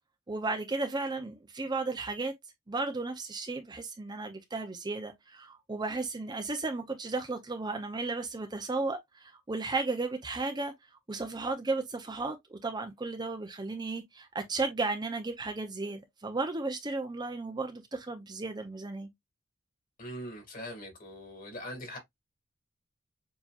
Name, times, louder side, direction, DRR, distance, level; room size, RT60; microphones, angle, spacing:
voice 1, 0.3-2.3 2.7-10.7 11.1-19.1, right 3 dB, 20° right, 0.6 m, -34 dB
voice 2, 20.0-22.0, equal, 40° left, 2.3 m, -42 dB
7.1 x 2.8 x 2.4 m
head